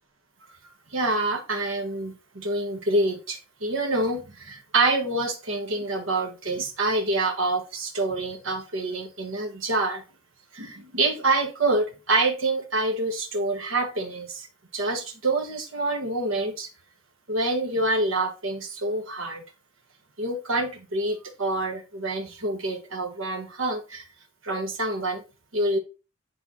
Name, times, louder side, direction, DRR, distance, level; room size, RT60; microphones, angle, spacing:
voice 1, 0.9-10.0 10.5-14.5 14.7-16.7 17.3-19.4 20.2-24.1 24.4-25.2 25.5-25.8, right 2 dB, 90° right, 1.5 m, -26 dB
9.1 x 3.4 x 4.0 m
head